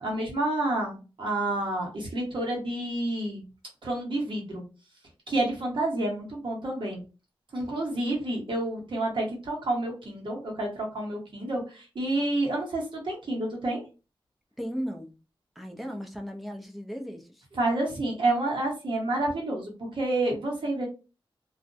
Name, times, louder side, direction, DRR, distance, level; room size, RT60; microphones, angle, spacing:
voice 1, 0.0-3.4 3.8-4.7 5.3-7.0 7.5-13.8 17.5-20.9, right 2 dB, 60° right, -1 dB, 1.1 m, -29 dB
voice 2, 14.6-15.1 15.6-17.5, equal, ahead, 1 dB, 0.5 m, -36 dB
2.5 x 2.1 x 2.6 m, 0.31 s
wide cardioid pair, 95°, 9 cm